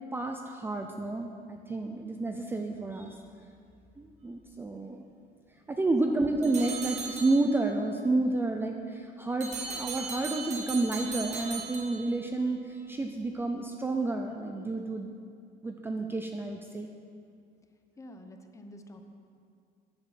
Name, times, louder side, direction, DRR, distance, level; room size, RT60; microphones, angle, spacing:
voice 1, 0.1-3.2 4.0-5.0 5.7-15.1 15.6-16.9, right 2 dB, 15° right, 4 dB, 0.6 m, -30 dB
sound 1, 6.4-7.8 9.4-12.4, right 4 dB, 40° right, 1.7 m, -38 dB
voice 2, 18.0-19.0, left 1 dB, 15° left, 6 dB, 1.0 m, -47 dB
14.5 x 10.5 x 5.9 m, 2.4 s
cardioid pair, 160°, 17 cm